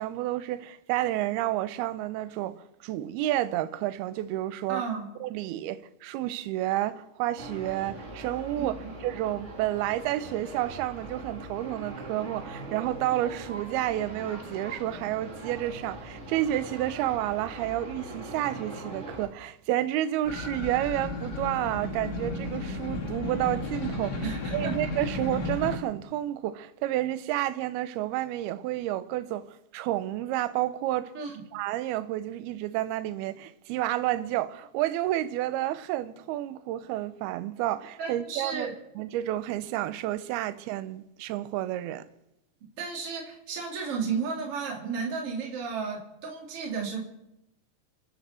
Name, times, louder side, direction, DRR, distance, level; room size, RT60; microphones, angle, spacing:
voice 1, 0.0-4.8 5.2-24.2 24.5-31.1 31.5-42.1, right 14 dB, 75° right, 2.4 m, -30 dB
voice 2, 4.7-5.1 8.6-8.9 24.2-24.7 31.1-31.3 38.0-38.7 42.8-47.0, right 5 dB, 35° right, 3.3 m, -33 dB
sound 1, 7.4-19.3, right 2 dB, 55° right, 0.7 m, -41 dB
sound 2, 20.2-25.8, left 2 dB, 70° left, 0.9 m, -33 dB
28.5 x 10.0 x 4.4 m
omnidirectional pair, 5.1 m